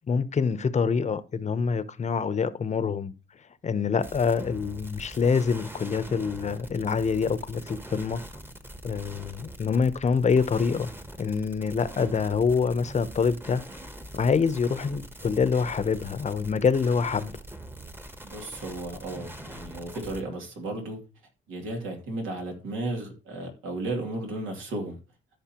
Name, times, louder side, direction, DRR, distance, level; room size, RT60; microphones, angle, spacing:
voice 1, 0.1-3.1 3.6-8.2 8.8-10.9 11.2-13.6 14.1-17.3, left 5 dB, 35° left, 0.8 m, -25 dB
sound 1, 4.0-20.2, right 1 dB, 10° right, 1.1 m, -43 dB
voice 2, 18.2-21.0 21.5-25.0, right 2 dB, 90° right, 2.6 m, -34 dB
14.0 x 5.4 x 2.9 m
cardioid pair, 90°, 20 cm